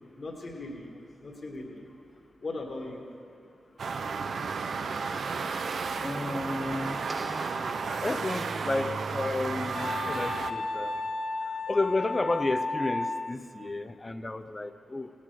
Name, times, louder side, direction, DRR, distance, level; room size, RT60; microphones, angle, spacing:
voice 1, 0.1-1.9 2.4-3.1 14.3-14.5, left 2 dB, 55° left, 0 dB, 2.1 m, -40 dB
sound 1, 3.8-10.5, right 5 dB, 65° right, 0.6 m, -33 dB
voice 2, 5.9-7.0 8.0-11.0 11.7-15.1, left 2 dB, 30° left, 10 dB, 0.7 m, -32 dB
sound 2, 7.1-9.0, right 1 dB, 25° right, 0.9 m, -43 dB
Wind instrument woodwind instrument, 9.7-13.4, left 3 dB, 80° left, 0.9 m, -33 dB
16.5 x 6.6 x 6.6 m, 2.6 s
cardioid pair, 50°, 0 cm